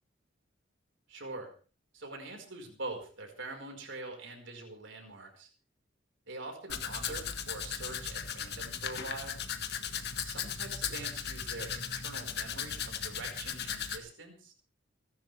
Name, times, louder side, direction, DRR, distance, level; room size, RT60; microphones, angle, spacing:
voice 1, 1.1-1.5 1.9-5.5 6.3-9.4 10.2-14.5, right 2 dB, 65° right, 3 dB, 5.0 m, -44 dB
Domestic sounds home sounds, 6.7-14.0, left 7 dB, 55° left, 1.8 m, -37 dB
28.5 x 12.0 x 3.5 m, 0.37 s
head